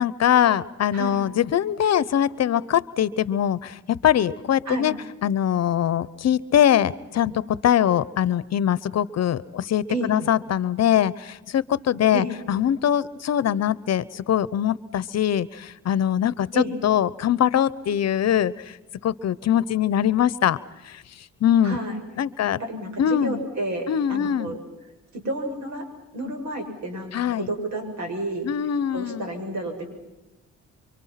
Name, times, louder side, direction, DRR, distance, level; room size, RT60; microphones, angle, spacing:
voice 1, 0.0-4.9 5.2-18.8 19.0-20.6 20.8-21.0 21.4-21.8 22.2-22.6 23.0-23.4 23.9-24.5 27.1-27.5 28.4-29.3, left 10 dB, 60° left, 19 dB, 0.9 m, -22 dB
voice 2, 21.6-22.0 22.6-24.6 25.1-25.9 26.1-28.5 28.9-29.9, right 1 dB, 65° right, 4 dB, 7.3 m, -30 dB
28.0 x 24.5 x 5.9 m, 1.0 s
cardioid pair, 90°, 30 cm